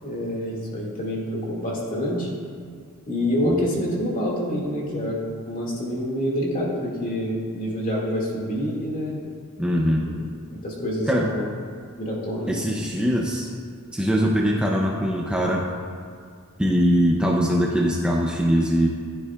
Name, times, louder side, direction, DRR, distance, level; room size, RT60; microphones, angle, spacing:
voice 1, 0.0-2.3 3.1-5.2 5.4-9.2 10.0-10.1 10.5-11.5 12.0-12.7, equal, 40° left, -3 dB, 2.2 m, -27 dB
voice 2, 9.6-10.0 11.1-11.3 12.5-13.5 13.9-15.6 16.6-18.9, equal, 5° right, -2 dB, 0.6 m, -22 dB
15.0 x 9.9 x 2.4 m, 2.2 s
head